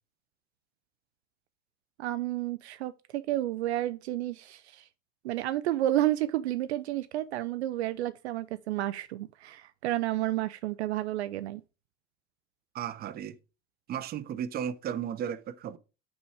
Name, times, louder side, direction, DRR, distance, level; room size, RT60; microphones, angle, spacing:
voice 1, 2.0-4.9 5.2-11.6, right 14 dB, 60° right, 0.5 m, -31 dB
voice 2, 12.7-13.4 13.9-15.8, right 9 dB, 25° right, 0.7 m, -34 dB
6.1 x 4.9 x 5.0 m
figure-of-eight pair, 75°, 37 cm